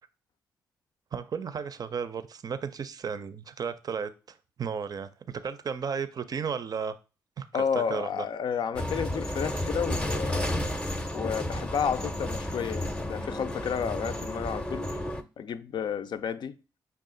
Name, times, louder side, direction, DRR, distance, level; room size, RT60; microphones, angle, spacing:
voice 1, 1.1-7.0 7.4-7.5 7.8-8.2, right 6 dB, 50° right, 0.5 m, -34 dB
voice 2, 7.5-10.5 11.1-14.9 15.4-16.6, left 7 dB, 60° left, 0.4 m, -31 dB
sound 1, 8.7-15.2, left 1 dB, 10° left, 0.6 m, -32 dB
5.5 x 2.4 x 3.8 m
supercardioid pair, 55°, 8 cm